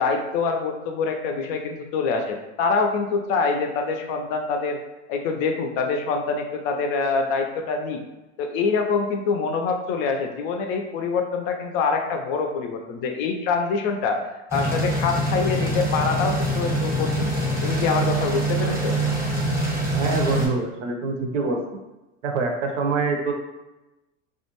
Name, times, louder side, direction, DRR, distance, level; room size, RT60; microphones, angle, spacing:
voice 1, 0.0-4.8 5.1-8.0 8.4-14.2 14.5-17.3 17.6-19.0, left 4 dB, 50° left, 4 dB, 0.5 m, -25 dB
sound 1, 14.5-20.5, right 1 dB, 5° right, 0.7 m, -24 dB
voice 2, 19.9-21.6 22.2-23.3, right 3 dB, 75° right, 3 dB, 0.7 m, -25 dB
2.4 x 2.2 x 2.8 m, 1.0 s
hypercardioid pair, 100°, 38 cm